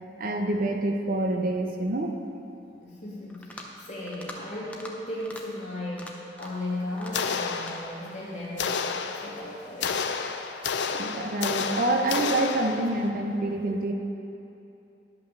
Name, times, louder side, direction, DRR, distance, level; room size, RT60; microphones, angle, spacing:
voice 1, 0.2-2.2 10.9-13.9, right 2 dB, 50° right, 3 dB, 0.6 m, -27 dB
voice 2, 2.8-8.9 9.1-9.9, left 1 dB, 40° left, -7 dB, 2.5 m, -36 dB
sound 1, 3.3-3.8 4.1-4.4 4.7-4.9 5.2-5.4 5.9-6.7 7.0-7.8, left 1 dB, 10° left, 0.7 m, -43 dB
sound 2, 7.1-8.2 8.6-13.1, left 5 dB, 85° left, 0.5 m, -31 dB
10.5 x 5.6 x 6.5 m, 2.8 s
head